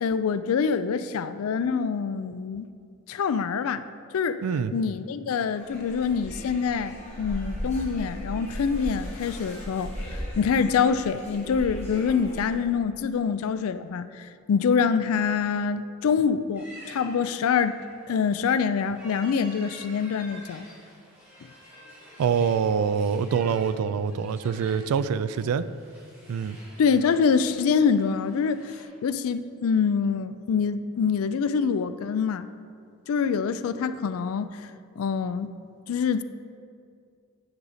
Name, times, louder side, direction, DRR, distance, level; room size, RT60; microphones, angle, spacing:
voice 1, 0.0-2.7 3.1-3.8 4.1-4.4 4.7-17.8 18.1-20.6 26.8-32.5 33.1-34.7 35.0-35.5 35.9-36.2, left 6 dB, 75° left, 13 dB, 0.3 m, -25 dB
voice 2, 4.4-4.7 22.2-25.6 26.3-26.6, right 6 dB, 85° right, 15 dB, 0.3 m, -25 dB
sound 1, 5.5-12.7, equal, 30° left, 1.6 m, -37 dB
sound 2, 16.5-28.8, equal, 10° right, 1.5 m, -49 dB
9.4 x 5.0 x 4.1 m, 2.3 s
head